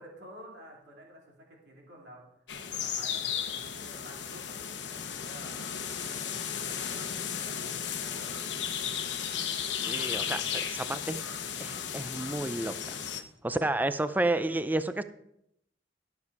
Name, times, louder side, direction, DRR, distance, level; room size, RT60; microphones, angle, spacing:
voice 1, 0.0-2.2 2.7-5.6 6.1-8.4 10.8-11.1, equal, 70° right, -1 dB, 2.9 m, -51 dB
sound 1, 2.5-13.2, left 8 dB, 80° left, 1.0 m, -35 dB
voice 2, 9.9-11.2 11.6-13.0 13.4-15.0, right 2 dB, 10° right, 12 dB, 0.4 m, -31 dB
12.5 x 6.9 x 4.7 m, 0.76 s
head